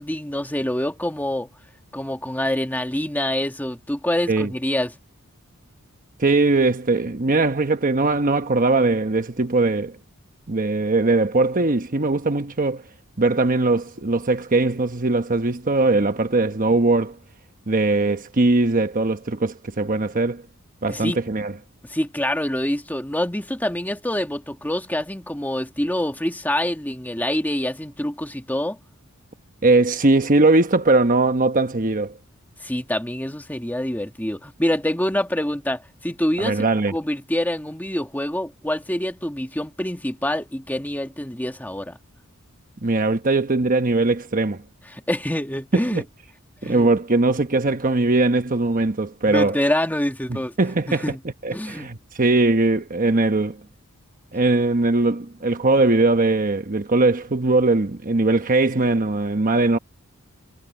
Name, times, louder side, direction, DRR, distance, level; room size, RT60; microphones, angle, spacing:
voice 1, 0.0-1.5 1.9-4.9 20.9-21.2 21.8-28.8 32.6-36.6 36.9-42.0 44.9-46.0 46.6-46.9 49.2-50.5 50.9-51.2 51.5-51.9, left 1 dB, 10° left, 1.7 m, -26 dB
voice 2, 6.2-10.0 10.5-12.8 13.2-17.2 17.7-20.4 20.8-21.5 29.6-32.1 36.4-37.0 42.8-44.6 45.7-46.0 46.6-49.6 50.3-51.1 51.4-53.6 54.3-59.8, right 2 dB, 40° right, 1.1 m, -20 dB
head